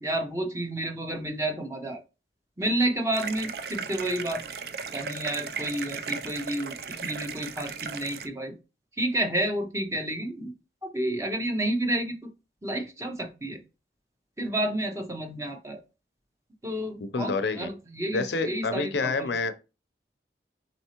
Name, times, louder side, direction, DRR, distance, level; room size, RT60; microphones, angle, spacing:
voice 1, 0.0-2.0 2.6-4.4 4.9-6.8 7.0-8.5 9.0-10.5 10.8-12.2 12.6-13.6 14.4-15.8 16.6-19.3, right 1 dB, 15° right, 0.8 m, -30 dB
sound 1, 3.1-8.3, right 5 dB, 60° right, 0.5 m, -36 dB
voice 2, 17.0-17.7 18.1-19.5, left 4 dB, 80° left, 0.6 m, -28 dB
4.3 x 4.0 x 2.9 m
head